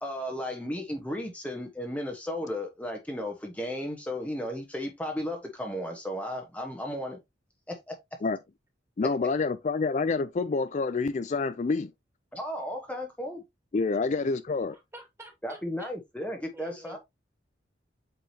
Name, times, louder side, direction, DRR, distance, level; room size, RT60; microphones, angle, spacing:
voice 1, 0.0-7.2 7.7-8.0 12.3-13.4 15.4-17.0, left 1 dB, 10° left, 1.1 m, -34 dB
voice 2, 9.0-11.9 13.7-14.7, left 4 dB, 40° left, 0.4 m, -27 dB
voice 3, 14.6-15.9 16.5-17.0, right 1 dB, 15° right, 2.2 m, -48 dB
8.1 x 4.8 x 2.8 m
head